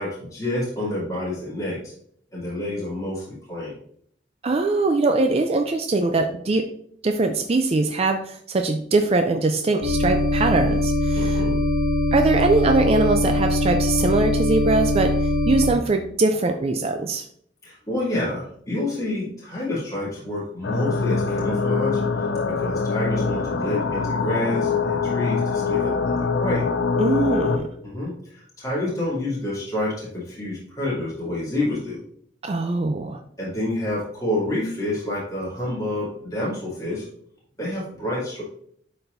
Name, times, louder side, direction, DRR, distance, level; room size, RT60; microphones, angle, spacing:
voice 1, 0.0-1.9 2.3-3.8 11.1-11.6 17.6-22.0 22.6-26.6 27.8-32.0 33.4-37.1 37.6-38.4, left 1 dB, 20° left, -8 dB, 2.7 m, -28 dB
voice 2, 4.4-6.7 7.0-11.4 12.1-15.2 15.5-17.2 27.0-27.7 32.4-33.2, right 3 dB, 35° right, 5 dB, 0.4 m, -22 dB
sound 1, 9.8-15.7, left 1 dB, 80° right, 1.5 m, -22 dB
sound 2, 20.6-27.6, left 4 dB, 75° left, 0.6 m, -24 dB
11.0 x 4.3 x 2.6 m, 0.63 s
head